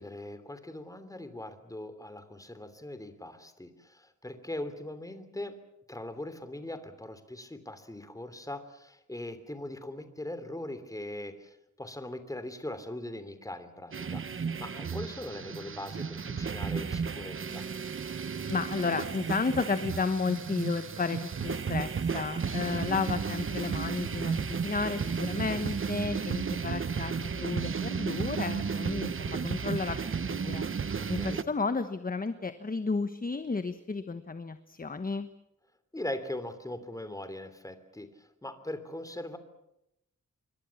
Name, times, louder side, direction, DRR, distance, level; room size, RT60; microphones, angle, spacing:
voice 1, 0.0-5.5 5.9-17.6 22.7-22.8 31.1-31.5 35.9-39.4, left 1 dB, 10° left, 10 dB, 3.1 m, -40 dB
sound 1, 13.9-31.4, right 5 dB, 40° right, 1.0 m, -33 dB
sound 2, 17.4-26.0, right 6 dB, 85° right, 3.4 m, -53 dB
voice 2, 18.5-30.0 30.3-30.7 31.1-35.3, left 4 dB, 30° left, 10 dB, 1.2 m, -32 dB
27.5 x 23.5 x 7.2 m, 0.83 s
wide cardioid pair, 140°, 30 cm